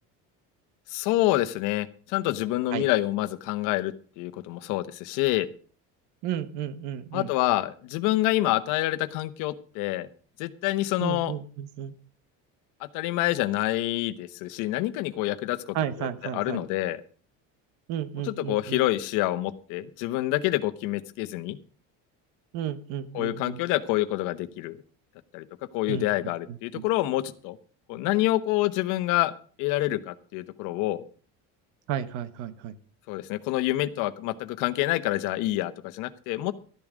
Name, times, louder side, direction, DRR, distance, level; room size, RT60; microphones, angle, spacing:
voice 1, 0.9-5.5 7.1-10.1 10.4-11.3 12.8-16.1 16.3-17.0 18.2-21.6 23.1-24.8 25.3-25.4 25.7-27.6 27.9-29.3 29.6-31.0 33.1-36.5, left 16 dB, 75° left, 13 dB, 1.1 m, -27 dB
voice 2, 6.2-7.3 11.0-11.9 15.7-16.6 17.9-18.8 22.5-23.6 25.9-26.1 26.5-26.8 31.9-32.8, right 10 dB, 70° right, 14 dB, 1.3 m, -33 dB
13.0 x 11.0 x 5.0 m, 0.42 s
cardioid pair, 175°, 31 cm